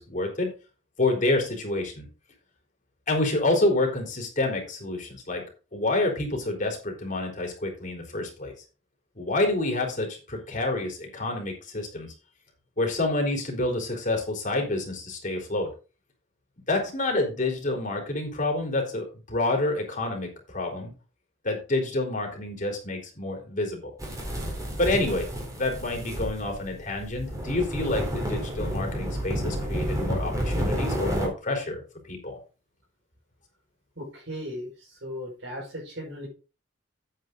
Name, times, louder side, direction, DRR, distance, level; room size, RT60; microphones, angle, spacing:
voice 1, 0.1-0.5 1.0-2.0 3.1-5.4 5.7-8.5 9.2-12.1 12.8-15.7 16.7-20.9 21.4-23.9 24.8-25.3 25.6-32.4, left 2 dB, 40° left, 2 dB, 3.9 m, -28 dB
sound 1, 24.0-31.3, equal, 20° right, 4.1 m, -30 dB
voice 2, 34.0-36.3, equal, 70° right, -6 dB, 5.3 m, -37 dB
9.4 x 8.8 x 3.9 m, 0.33 s
head